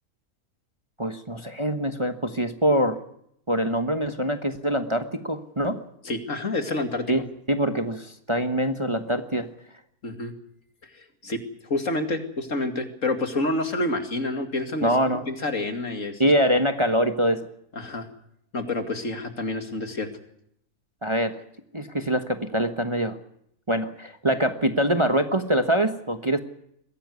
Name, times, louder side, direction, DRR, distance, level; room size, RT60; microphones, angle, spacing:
voice 1, 1.0-3.0 3.5-5.8 7.1-7.2 7.5-9.5 14.8-15.2 16.2-17.4 21.0-21.4 21.7-23.2 23.7-26.4, equal, 20° right, 8 dB, 1.3 m, -24 dB
voice 2, 6.0-7.2 10.0-10.3 10.9-14.9 15.3-16.2 17.7-18.1 18.5-20.1, left 2 dB, 60° left, 7 dB, 2.8 m, -28 dB
22.5 x 16.0 x 9.6 m, 0.73 s
omnidirectional pair, 1.5 m